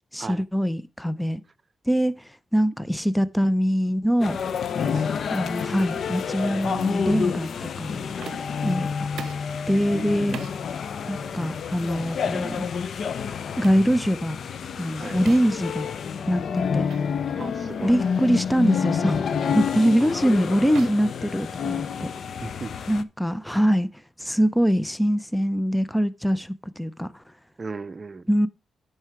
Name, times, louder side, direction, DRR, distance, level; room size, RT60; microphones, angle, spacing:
voice 1, 0.1-1.4 1.9-4.4 5.3-7.5 7.8-8.1 8.6-9.1 9.7-10.4 11.1-12.7 13.6-14.4 14.8-15.9 16.3-16.9 17.8-22.1 22.9-23.9 24.2-27.2 28.3-28.5, equal, 5° left, 0.7 m, -23 dB
sound 1, 4.2-23.0, left 6 dB, 65° left, 0.7 m, -29 dB
sound 2, 8.2-8.6 9.2-9.5 10.3-10.6 11.4-11.6 12.4-12.6 13.6-13.9 15.3-15.6 16.9-17.0 17.5-17.6 18.4-18.6 19.5-19.8 20.7-22.0, right 8 dB, 70° right, 0.7 m, -41 dB
voice 2, 17.4-18.0 20.0-20.1 22.4-22.7 27.6-28.3, right 4 dB, 35° right, 0.7 m, -36 dB
9.6 x 5.6 x 4.7 m
cardioid pair, 80°, 0 cm